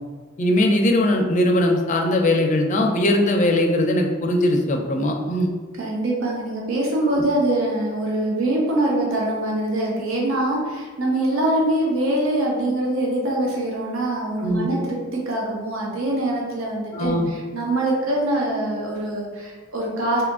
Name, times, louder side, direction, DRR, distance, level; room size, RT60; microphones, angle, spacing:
voice 1, 0.4-5.5 7.1-7.2 14.4-14.8 16.9-17.3, left 1 dB, 40° left, 2 dB, 0.4 m, -20 dB
voice 2, 5.8-20.2, right 1 dB, 85° right, -2 dB, 0.6 m, -24 dB
2.7 x 2.4 x 3.5 m, 1.5 s
head